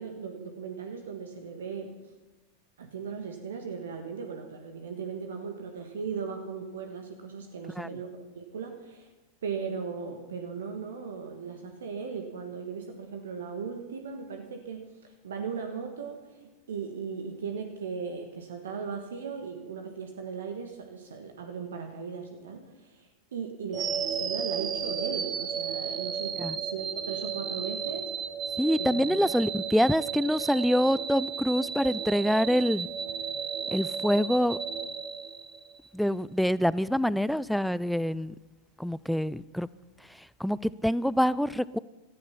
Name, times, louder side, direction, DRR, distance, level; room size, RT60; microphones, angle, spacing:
voice 1, 0.0-1.9 2.8-9.1 9.4-28.1 28.8-29.2, right 6 dB, 65° right, 5 dB, 1.6 m, -38 dB
sound 1, 23.7-35.9, right 7 dB, 25° right, 1.1 m, -33 dB
voice 2, 28.6-32.9 33.7-34.6 35.9-38.3 38.8-39.7 40.2-41.8, equal, ahead, 19 dB, 0.4 m, -26 dB
17.5 x 14.0 x 5.8 m, 1.2 s
figure-of-eight pair, 90°, 0 cm